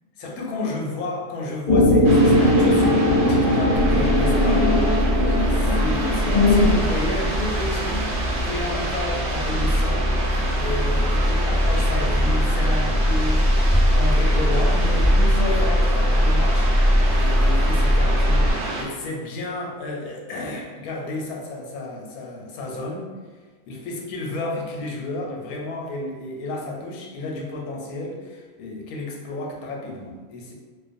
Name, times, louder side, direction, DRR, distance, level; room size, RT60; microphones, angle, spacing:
voice 1, 0.2-5.0 5.3-8.2 8.4-10.1 10.6-16.7 17.2-23.1 23.7-30.5, left 2 dB, 85° left, -1 dB, 1.1 m, -31 dB
sound 1, 1.7-6.7, left 1 dB, 60° left, 0.4 m, -19 dB
sound 2, 2.0-18.8, right 2 dB, 65° right, 0.7 m, -30 dB
sound 3, 3.7-18.5, equal, 15° right, 0.4 m, -21 dB
2.5 x 2.3 x 2.5 m, 1.4 s
omnidirectional pair, 1.5 m